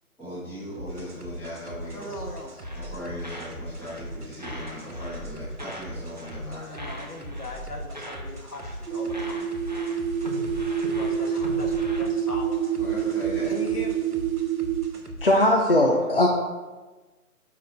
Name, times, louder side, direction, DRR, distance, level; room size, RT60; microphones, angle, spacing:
voice 1, 0.2-2.2 2.7-6.6 12.8-13.5, left 1 dB, 5° left, -13 dB, 1.2 m, -38 dB
sound 1, 0.7-15.5, equal, 85° right, 1.4 m, -40 dB
voice 2, 1.9-2.7 6.5-9.5 10.8-12.6 13.5-14.2, left 1 dB, 85° left, 2 dB, 1.4 m, -39 dB
sound 2, 2.6-4.1 4.4-5.9 6.2-6.5 6.7-8.3 8.5-8.8 9.1-12.0, equal, 30° right, 0.5 m, -40 dB
sound 3, 8.9-14.9, right 8 dB, 65° right, 0.8 m, -27 dB
voice 3, 15.2-16.3, left 1 dB, 40° left, 0 dB, 0.5 m, -19 dB
5.9 x 5.7 x 4.3 m, 1.2 s
figure-of-eight pair, 145°, 45 cm